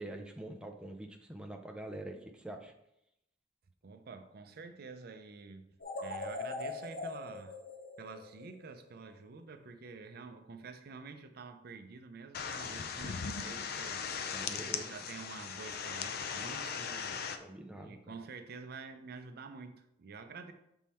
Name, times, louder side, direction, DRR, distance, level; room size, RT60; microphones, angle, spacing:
voice 1, 0.0-2.7 14.3-14.9 17.4-18.0, right 1 dB, 5° right, 3 dB, 0.5 m, -45 dB
voice 2, 3.8-7.6 8.0-14.0 14.5-17.2 17.7-20.5, right 4 dB, 55° right, 8 dB, 0.5 m, -48 dB
sound 1, 5.8-9.0, left 3 dB, 85° left, 1.1 m, -42 dB
sound 2, 12.3-17.4, left 6 dB, 55° left, 0.4 m, -38 dB
6.2 x 3.6 x 4.2 m, 0.81 s
head